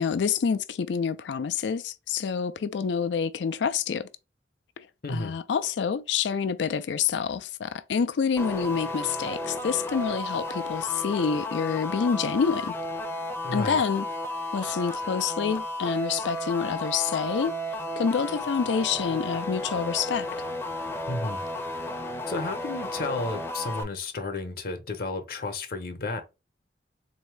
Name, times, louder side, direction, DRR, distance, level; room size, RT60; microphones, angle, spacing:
voice 1, 0.0-4.1 5.1-12.7 13.5-14.1 14.5-17.6 18.0-20.3, left 6 dB, 80° left, 0.4 m, -27 dB
voice 2, 5.0-5.3 13.4-13.8 21.1-21.4 22.3-26.2, left 2 dB, 55° left, 0.8 m, -32 dB
sound 1, 8.4-23.8, left 1 dB, 15° left, 0.5 m, -33 dB
4.0 x 2.7 x 3.2 m
head